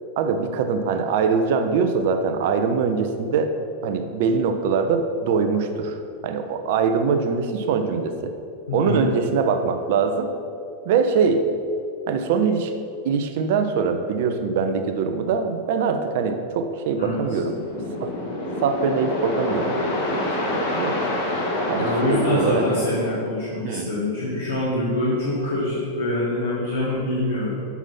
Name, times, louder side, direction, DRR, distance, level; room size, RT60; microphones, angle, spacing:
voice 1, 0.2-3.5 3.8-8.3 8.7-10.3 10.8-11.5 12.1-12.7 13.0-17.6 18.0-18.1 18.6-21.2 21.7-22.7 23.6-23.9, right 5 dB, 50° right, 7 dB, 0.7 m, -23 dB
voice 2, 8.7-9.2 17.0-17.2 21.8-27.7, left 1 dB, 75° left, -9 dB, 1.7 m, -25 dB
sound 1, 16.9-23.1, left 1 dB, 50° left, 1.6 m, -27 dB
7.0 x 6.0 x 5.7 m, 2.6 s
figure-of-eight pair, 90°, 0 cm